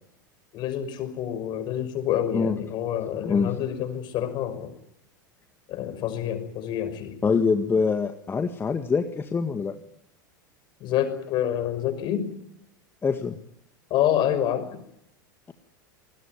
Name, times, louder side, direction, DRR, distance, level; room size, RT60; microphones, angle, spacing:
voice 1, 0.5-4.7 5.7-7.2 10.8-12.3 13.9-14.7, left 10 dB, 45° left, 10 dB, 5.9 m, -27 dB
voice 2, 7.2-9.8 13.0-13.4, left 5 dB, 20° left, 7 dB, 1.8 m, -24 dB
26.0 x 20.5 x 9.6 m, 0.76 s
figure-of-eight pair, 85°, 11 cm